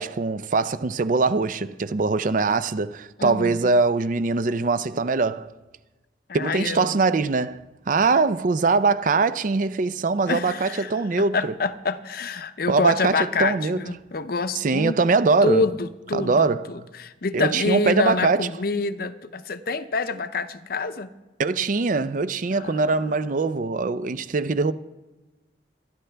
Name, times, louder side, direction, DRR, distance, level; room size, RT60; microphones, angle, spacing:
voice 1, 0.0-5.5 6.3-11.5 12.7-13.9 14.5-15.7 16.1-16.7 17.3-18.5 21.4-24.7, right 4 dB, 45° right, 0.5 m, -22 dB
voice 2, 3.2-3.6 6.3-7.0 10.3-10.9 11.3-15.0 15.4-21.1 22.5-23.1, left 3 dB, 55° left, 0.6 m, -27 dB
24.5 x 10.5 x 3.4 m
head